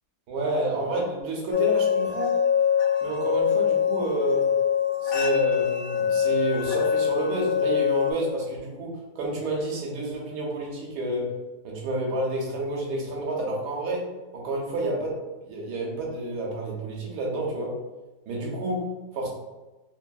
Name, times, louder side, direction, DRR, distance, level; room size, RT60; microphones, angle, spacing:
voice 1, 0.3-2.3 3.0-4.5 5.0-11.3 11.6-14.1 14.3-17.7 18.3-19.3, right 1 dB, 80° right, -3 dB, 1.4 m, -29 dB
sound 1, 1.5-8.1, left 8 dB, 80° left, 1.2 m, -24 dB
3.4 x 2.6 x 2.3 m, 1.1 s
omnidirectional pair, 1.7 m